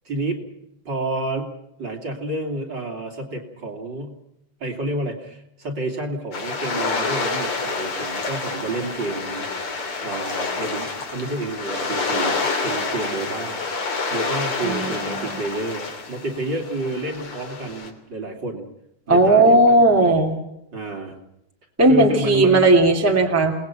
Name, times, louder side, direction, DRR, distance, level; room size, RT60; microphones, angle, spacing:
voice 1, 0.1-0.4 0.9-1.5 1.8-4.2 4.6-9.5 9.8-18.6 19.1-19.8 20.7-21.2 21.8-22.7, right 2 dB, 35° right, 2 dB, 3.5 m, -29 dB
sound 1, 6.3-17.9, left 4 dB, 45° left, 3.8 m, -28 dB
voice 2, 14.6-15.3 19.1-20.4 21.8-23.5, right 2 dB, 5° right, 1 dB, 2.6 m, -16 dB
29.5 x 19.5 x 5.9 m, 0.81 s
omnidirectional pair, 3.5 m